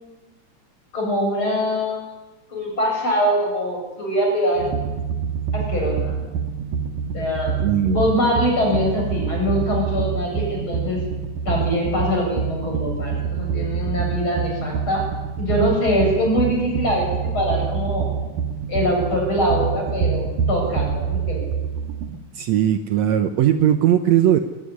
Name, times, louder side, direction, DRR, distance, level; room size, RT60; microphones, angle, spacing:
voice 1, 0.9-2.0 2.5-4.7 5.5-6.1 7.1-7.6 7.9-11.0 11.4-15.0 15.4-17.1 17.3-18.1 18.7-21.5, equal, 40° left, 0 dB, 8.3 m, -23 dB
sound 1, 4.6-22.2, right 6 dB, 90° right, 3.0 m, -26 dB
voice 2, 7.6-8.0 22.3-24.4, right 11 dB, 70° right, 9 dB, 1.9 m, -18 dB
21.0 x 18.0 x 9.9 m, 1.2 s
omnidirectional pair, 3.6 m